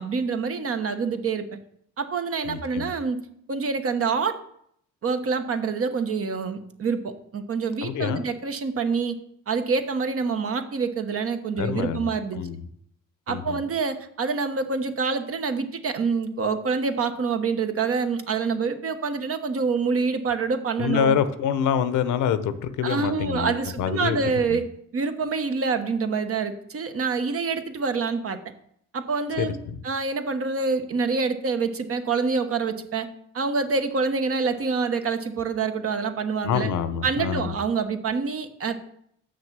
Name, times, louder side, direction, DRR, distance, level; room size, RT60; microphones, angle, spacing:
voice 1, 0.0-1.6 2.0-3.2 3.5-4.4 5.0-9.1 9.5-12.4 13.3-21.2 22.8-24.7 24.9-28.4 28.9-29.6 29.8-33.1 33.3-36.7 37.0-38.8, right 4 dB, 50° right, 8 dB, 1.1 m, -26 dB
voice 2, 2.5-2.9 7.8-8.3 11.6-12.6 13.3-13.6 20.8-24.2 24.5-24.6 29.4-29.8 36.4-37.6, left 8 dB, 80° left, 12 dB, 0.9 m, -26 dB
7.1 x 6.5 x 7.3 m, 0.70 s
cardioid pair, 90°, 30 cm